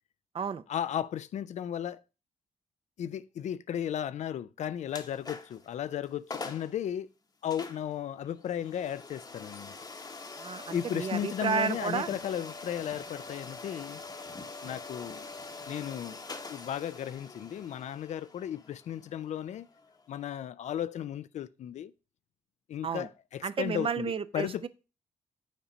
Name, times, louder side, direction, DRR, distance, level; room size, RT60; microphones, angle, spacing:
voice 1, 0.7-2.0 3.0-7.1 7.4-9.7 10.7-14.0 14.6-15.3 15.7-16.2 16.5-19.7 20.1-21.9 22.7-24.7, left 10 dB, 65° left, 0.4 m, -35 dB
sound 1, 4.9-5.7 6.0-6.1 6.3-6.7 7.5-20.2, left 3 dB, 30° left, 0.9 m, -44 dB
voice 2, 10.4-12.1 22.8-23.1 23.4-24.7, right 6 dB, 45° right, 0.6 m, -32 dB
7.3 x 4.3 x 5.0 m
supercardioid pair, 60°, 13 cm